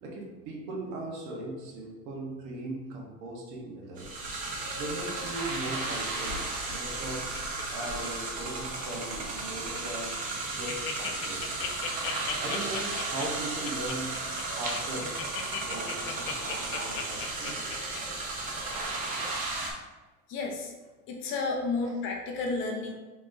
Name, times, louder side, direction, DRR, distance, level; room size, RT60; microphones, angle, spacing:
voice 1, 0.0-4.2 4.7-7.3 7.7-10.1 10.5-11.6 12.4-14.2 14.6-15.3 15.6-17.6 21.8-21.9, right 1 dB, 60° right, -1 dB, 1.1 m, -39 dB
sound 1, 4.0-19.7, right 3 dB, 25° right, 0.6 m, -34 dB
Laughter, 6.7-8.5 8.8-9.1 9.6-9.7 10.0-10.1 10.3-18.8 19.2-19.3, left 7 dB, 85° left, 0.8 m, -37 dB
voice 2, 20.3-20.7 21.1-22.9, left 3 dB, 35° left, 1 dB, 0.5 m, -31 dB
4.5 x 3.9 x 2.7 m, 1.2 s
cardioid pair, 175°, 33 cm